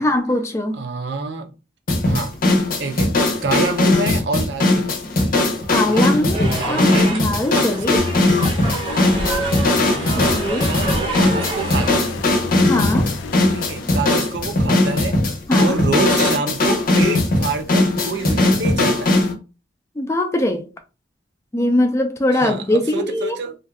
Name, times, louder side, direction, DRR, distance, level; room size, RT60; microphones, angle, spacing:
voice 1, 0.0-0.8 5.7-8.0 10.1-10.7 12.7-13.1 15.5-15.7 20.0-20.7 21.5-23.4, left 1 dB, 15° left, 0.4 m, -21 dB
voice 2, 0.7-1.5 2.0-2.5 2.8-4.9 5.2-5.5 5.9-7.2 7.5-7.9 9.9-12.2 13.5-15.2 15.6-19.2 22.3-23.6, right 4 dB, 65° right, 0.5 m, -27 dB
sound 1, 1.9-19.3, left 2 dB, 50° left, 0.7 m, -19 dB
sound 2, 6.3-11.9, right 2 dB, 25° right, 0.6 m, -28 dB
sound 3, 8.0-14.4, left 3 dB, 85° left, 0.4 m, -32 dB
2.6 x 2.3 x 3.4 m
head